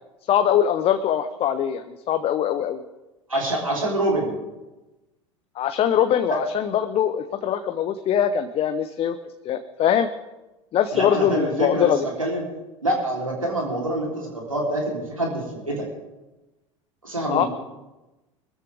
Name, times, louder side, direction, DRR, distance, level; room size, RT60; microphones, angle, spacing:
voice 1, 0.3-2.8 5.6-9.2 9.4-10.1 10.7-12.1 17.3-17.4, left 9 dB, 35° left, 8 dB, 0.9 m, -22 dB
voice 2, 3.3-4.3 6.3-6.4 10.9-12.4 12.8-15.9 17.0-17.5, right 1 dB, 90° right, -1 dB, 3.8 m, -26 dB
23.5 x 13.5 x 3.6 m, 1.0 s
figure-of-eight pair, 75°, 17 cm